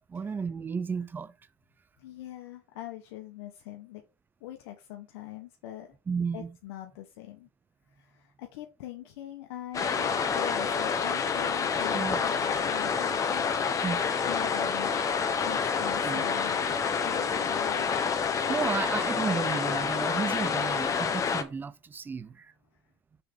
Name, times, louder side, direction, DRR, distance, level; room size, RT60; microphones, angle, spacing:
voice 1, 0.1-1.3 6.1-6.5 11.9-12.2 13.8-14.0 16.0-16.2 18.5-22.5, right 5 dB, 15° right, 0.5 m, -33 dB
voice 2, 2.0-4.0 4.4-5.9 6.3-7.5 7.9-13.5 14.2-14.9 15.4-16.6 17.0-17.9, left 13 dB, 75° left, 1.2 m, -42 dB
sound 1, 9.7-21.4, left 6 dB, 25° left, 1.0 m, -28 dB
6.8 x 3.5 x 6.2 m
supercardioid pair, 135°, 14 cm